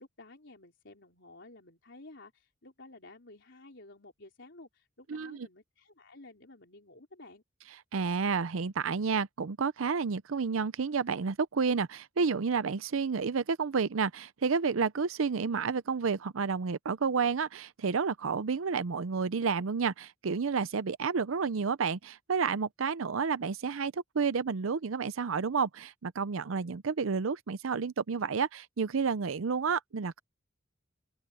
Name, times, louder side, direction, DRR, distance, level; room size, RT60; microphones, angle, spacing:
voice 1, 0.0-7.4, left 2 dB, 60° left, 4.2 m, -53 dB
voice 2, 5.1-5.5 7.9-30.2, right 5 dB, 80° right, 0.6 m, -30 dB
open air
head